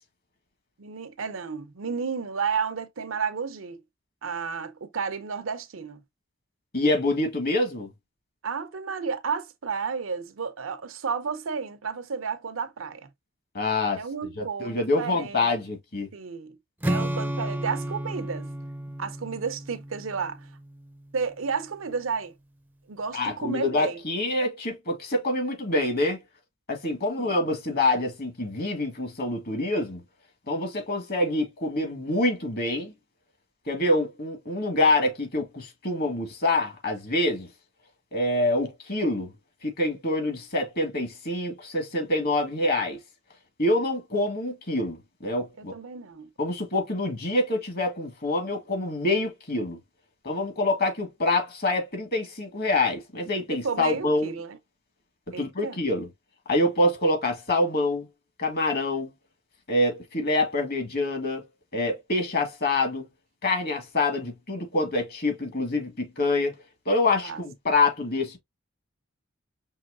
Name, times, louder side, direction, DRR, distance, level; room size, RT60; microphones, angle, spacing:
voice 1, 0.8-3.8 4.2-6.0 8.4-13.1 14.0-15.5 16.1-16.6 16.9-18.5 19.0-20.5 21.1-22.3 22.9-24.0 27.2-27.5 45.6-46.3 53.5-54.6 55.3-55.8 67.2-67.4, right 5 dB, 80° right, 0.7 m, -32 dB
voice 2, 6.7-7.9 13.5-14.0 14.4-16.1 23.1-26.2 26.7-30.0 30.5-32.9 33.7-37.5 38.1-39.3 39.6-43.0 43.6-45.7 46.4-49.8 50.2-54.3 55.4-56.1 56.5-58.1 58.4-59.1 59.7-61.5 61.7-63.1 63.4-66.5 66.9-68.4, left 2 dB, 50° left, 1.6 m, -26 dB
Strum, 16.8-20.9, right 1 dB, 10° right, 0.5 m, -32 dB
5.6 x 3.0 x 2.4 m
head